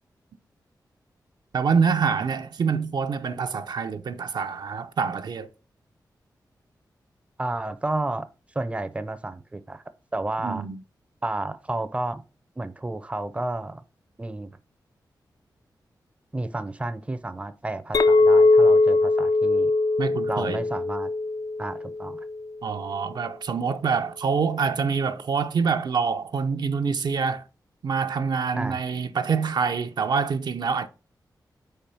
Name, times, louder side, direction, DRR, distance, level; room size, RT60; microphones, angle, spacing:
voice 1, 1.5-5.5 10.4-10.8 20.0-20.6 22.6-27.4 27.8-30.9, right 5 dB, 70° right, 0.6 m, -26 dB
voice 2, 7.4-8.3 8.5-9.8 10.1-10.6 11.2-12.2 12.6-13.8 14.2-14.5 16.3-19.7 20.3-21.1 21.6-22.2 28.5-28.8, right 2 dB, 15° right, 0.5 m, -31 dB
Chink clink, 17.9-22.4, left 2 dB, 55° left, 0.5 m, -20 dB
4.7 x 4.4 x 5.3 m
cardioid pair, 70°, 8 cm